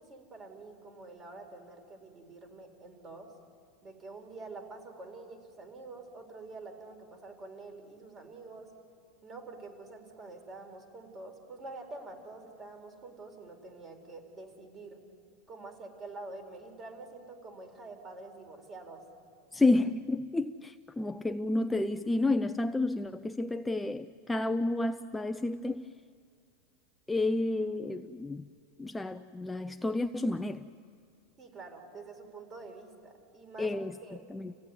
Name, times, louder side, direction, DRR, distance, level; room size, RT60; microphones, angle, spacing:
voice 1, 0.0-3.3 3.8-8.7 9.2-15.0 15.5-19.0 31.4-33.7 34.0-34.2, right 3 dB, 25° right, 4 dB, 4.3 m, -47 dB
voice 2, 19.5-25.9 27.1-28.5 28.8-30.7 33.6-34.0 34.3-34.5, left 2 dB, 10° left, 8 dB, 0.5 m, -30 dB
29.0 x 16.0 x 9.5 m, 2.3 s
supercardioid pair, 130°, 0 cm